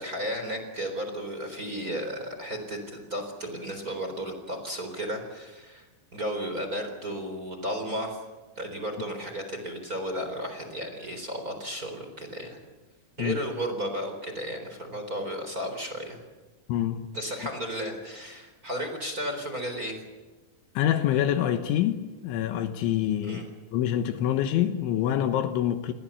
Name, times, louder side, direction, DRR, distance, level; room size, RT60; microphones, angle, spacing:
voice 1, 0.0-5.9 6.1-8.2 8.6-12.6 13.2-16.2 17.1-20.0 23.2-23.5, equal, 20° right, 3.6 m, -34 dB
voice 2, 16.7-17.0 20.8-23.4 23.7-25.9, left 11 dB, 75° left, 3.4 m, -26 dB
29.0 x 21.5 x 7.1 m
omnidirectional pair, 5.8 m